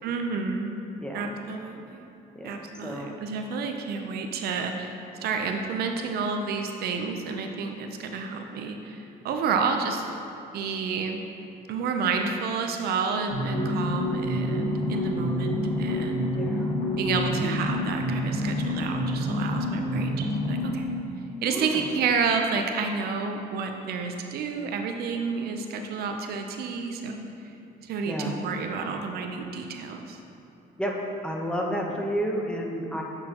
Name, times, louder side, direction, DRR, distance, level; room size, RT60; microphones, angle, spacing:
voice 1, 0.0-0.8 1.1-2.1 2.4-10.1 10.5-11.2 11.7-16.3 17.0-20.9 21.4-27.3 27.8-30.2, right 5 dB, 65° right, 4 dB, 0.6 m, -30 dB
voice 2, 1.0-1.3 2.3-2.5 2.8-3.1 16.3-16.7 21.4-21.9 28.0-28.3 30.8-31.0 31.2-33.0, equal, 5° left, -1 dB, 1.0 m, -31 dB
sound 1, 13.3-21.0, left 1 dB, 50° left, 1.7 m, -28 dB
8.4 x 6.5 x 2.9 m, 2.8 s
cardioid pair, 110°, 17 cm